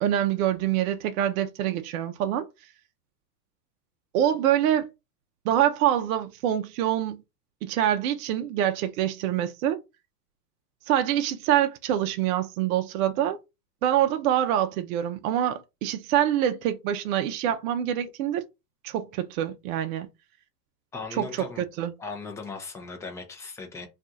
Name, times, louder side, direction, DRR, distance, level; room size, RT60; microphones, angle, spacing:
voice 1, 0.0-2.5 4.1-4.9 5.4-7.2 7.6-9.8 10.9-13.4 13.8-18.4 18.8-20.1 21.1-21.9, right 11 dB, 60° right, 0.6 m, -25 dB
voice 2, 20.9-21.6 22.0-23.9, left 4 dB, 5° left, 0.5 m, -38 dB
2.7 x 2.4 x 3.5 m
hypercardioid pair, 120°, 48 cm